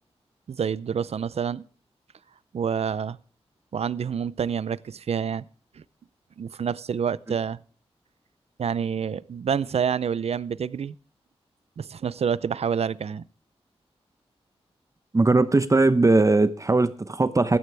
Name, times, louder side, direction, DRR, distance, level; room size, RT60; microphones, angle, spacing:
voice 1, 0.5-1.6 2.5-3.2 3.7-5.5 5.8-5.9 6.4-7.6 8.6-10.9 11.8-13.2, right 7 dB, 70° right, 0.6 m, -27 dB
voice 2, 15.1-17.6, right 3 dB, 30° right, 0.8 m, -19 dB
16.5 x 12.5 x 3.4 m
cardioid pair, 60°, 11 cm